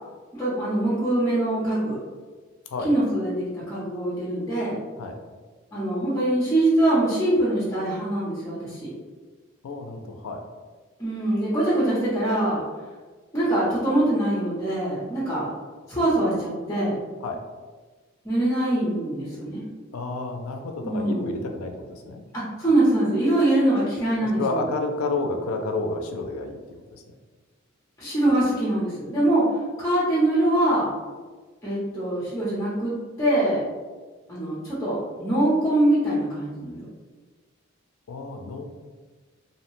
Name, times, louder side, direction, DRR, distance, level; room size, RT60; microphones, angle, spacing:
voice 1, 0.3-2.0 2.8-4.8 5.7-8.9 11.0-12.6 13.3-15.5 15.9-17.0 18.2-19.6 20.8-21.3 22.3-24.6 28.0-29.4 29.8-30.9 31.6-32.9 33.2-33.6 34.3-36.9, right 1 dB, 15° left, -10 dB, 0.6 m, -23 dB
voice 2, 9.6-10.4 17.2-17.4 19.9-22.2 24.3-26.6 26.9-27.0 38.1-38.6, left 3 dB, 90° left, 4 dB, 0.4 m, -30 dB
2.6 x 2.1 x 3.0 m, 1.4 s
head